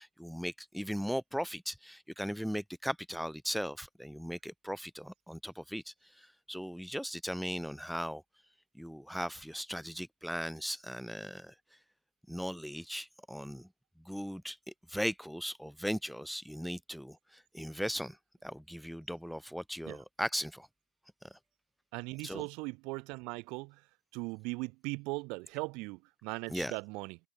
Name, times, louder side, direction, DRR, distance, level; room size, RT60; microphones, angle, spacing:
voice 1, 0.0-8.2 8.8-11.5 12.3-13.7 14.1-14.6 14.9-18.2 18.4-20.7 21.3-21.4 22.2-22.4 26.5-26.8, equal, ahead, 0.3 m, -38 dB
voice 2, 21.9-23.8 24.1-27.2, right 27 dB, 55° right, 1.0 m, -39 dB
hypercardioid pair, 100°, 0 cm